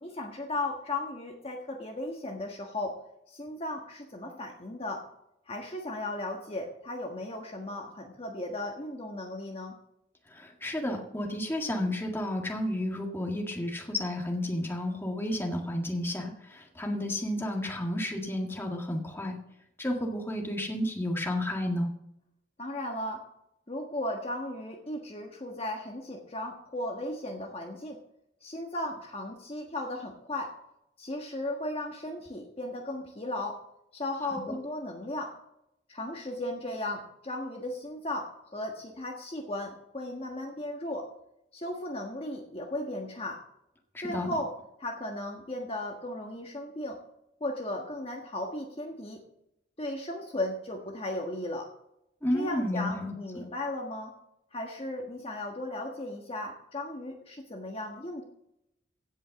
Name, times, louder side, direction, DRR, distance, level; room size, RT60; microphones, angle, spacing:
voice 1, 0.0-3.0 3.3-5.0 5.5-9.8 22.6-23.2 23.7-28.0 28.4-30.5 31.0-33.6 33.9-35.4 35.9-41.1 41.5-43.4 44.0-44.5 44.8-47.0 47.4-49.2 49.8-51.7 52.3-54.1 54.5-58.2, left 1 dB, 30° left, 1 dB, 1.4 m, -36 dB
voice 2, 10.3-19.4 19.8-21.9 34.5-34.6 43.9-44.3 52.2-53.1, left 1 dB, 10° left, 1 dB, 1.8 m, -31 dB
16.5 x 5.5 x 6.9 m, 0.80 s
head